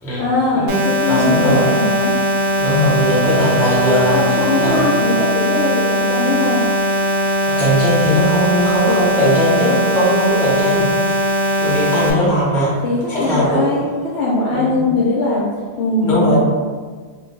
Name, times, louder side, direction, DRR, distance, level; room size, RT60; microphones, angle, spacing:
voice 1, 0.2-2.1 4.1-6.6 8.8-9.0 12.8-13.9 14.1-15.5 15.8-16.4, left 2 dB, 65° left, -7 dB, 0.6 m, -20 dB
sound 1, 0.7-12.1, equal, 80° right, 1.1 m, -19 dB
voice 2, 1.0-1.7 2.6-4.2 4.6-5.0 7.5-11.1 11.6-12.8 13.1-13.8 14.5-14.7 16.0-16.4, equal, 5° left, -7 dB, 0.3 m, -18 dB
2.4 x 2.2 x 3.8 m, 1.5 s
omnidirectional pair, 1.6 m